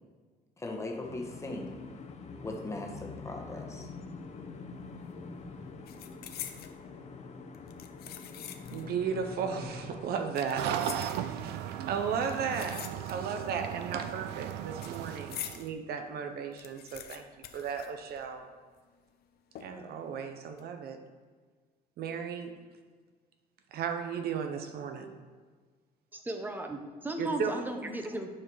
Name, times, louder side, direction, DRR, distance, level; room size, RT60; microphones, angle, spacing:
voice 1, 0.6-1.8 2.4-3.9, left 2 dB, 15° left, 1 dB, 1.4 m, -39 dB
sound 1, 1.0-10.1, left 4 dB, 40° left, 1.0 m, -45 dB
sound 2, 4.8-5.1 5.4-6.8 7.5-8.9 9.2-9.3 10.1-11.6 12.2-13.5 13.7-15.7 16.1-16.2 16.4-18.5 18.8-18.9 19.5-20.0 20.4-20.6, left 10 dB, 65° left, 0.8 m, -45 dB
voice 2, 8.7-17.3 17.5-18.5 19.6-21.0 22.0-22.5 23.7-25.1 27.2-27.6, right 6 dB, 65° right, 7 dB, 0.9 m, -35 dB
sound 3, 10.6-15.7, right 10 dB, 90° right, 0.5 m, -36 dB
voice 3, 26.1-28.3, right 1 dB, 10° right, 5 dB, 0.9 m, -36 dB
11.0 x 4.7 x 4.8 m, 1.5 s
cardioid pair, 110°, 17 cm